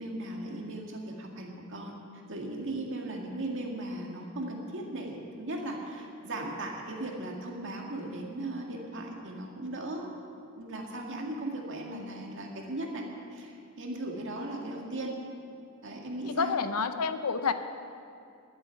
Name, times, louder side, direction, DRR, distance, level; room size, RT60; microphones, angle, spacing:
voice 1, 0.0-1.9 2.3-10.1 10.6-13.1 13.3-15.1 15.8-16.6, right 1 dB, 60° right, 0 dB, 2.0 m, -37 dB
voice 2, 16.2-17.5, left 5 dB, 90° left, 10 dB, 0.7 m, -29 dB
11.5 x 8.1 x 9.8 m, 2.5 s
head